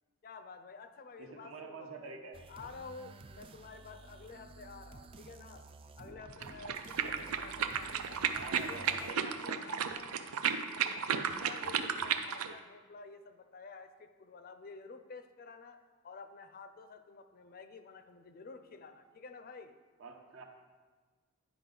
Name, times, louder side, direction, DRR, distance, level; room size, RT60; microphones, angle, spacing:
voice 1, 0.2-2.1 2.5-5.7 6.0-8.3 8.7-15.8 16.0-19.7, left 4 dB, 45° left, 8 dB, 0.5 m, -51 dB
voice 2, 1.2-2.4 7.0-7.3 8.3-9.5 20.0-20.4, right 4 dB, 70° right, 3 dB, 1.0 m, -48 dB
sound 1, 2.3-9.1, right 3 dB, 25° right, 0.3 m, -53 dB
sound 2, 6.3-12.5, right 7 dB, 90° right, 0.5 m, -34 dB
9.9 x 5.0 x 3.9 m, 1.4 s
head